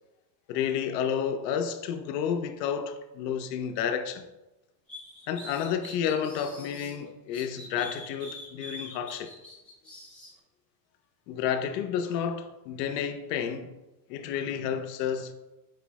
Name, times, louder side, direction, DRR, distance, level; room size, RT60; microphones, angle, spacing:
voice 1, 0.5-4.2 5.3-9.3 11.3-13.7 14.1-15.3, left 8 dB, 90° left, 0.6 m, -31 dB
sound 1, 4.9-6.9 7.3-10.3, left 1 dB, ahead, 0.6 m, -44 dB
4.8 x 2.0 x 4.6 m
supercardioid pair, 150°, 47 cm